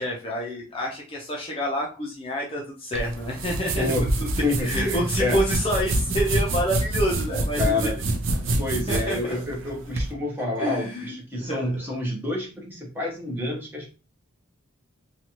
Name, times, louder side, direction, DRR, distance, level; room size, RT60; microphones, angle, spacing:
voice 1, 0.0-4.1 4.6-7.9 8.9-9.2 10.6-11.7, equal, 25° left, -2 dB, 0.5 m, -28 dB
sound 1, 2.9-10.1, right 2 dB, 60° right, 0.5 m, -27 dB
voice 2, 3.8-4.1 4.4-5.4 7.3-8.0 8.6-13.9, left 2 dB, 10° right, -2 dB, 0.7 m, -28 dB
2.8 x 2.3 x 2.9 m, 0.34 s
head